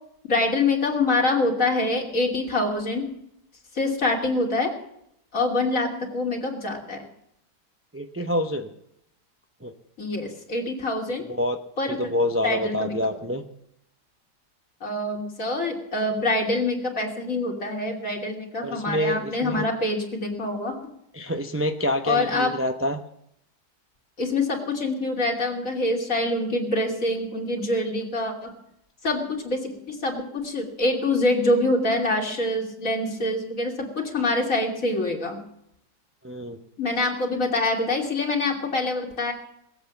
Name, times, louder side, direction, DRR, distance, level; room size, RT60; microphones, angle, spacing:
voice 1, 0.3-3.0 3.7-4.7 5.3-7.0 10.0-11.3 11.8-12.0 12.4-12.9 14.8-20.8 22.1-22.5 24.2-28.5 29.0-35.4 36.8-39.3, left 2 dB, 50° left, 0 dB, 3.1 m, -25 dB
voice 2, 7.9-8.7 9.6-9.7 11.3-11.6 11.9-13.5 18.6-19.7 21.1-23.0 36.2-36.6, equal, 20° right, 5 dB, 0.4 m, -27 dB
20.0 x 8.2 x 7.1 m, 0.76 s
omnidirectional pair, 1.8 m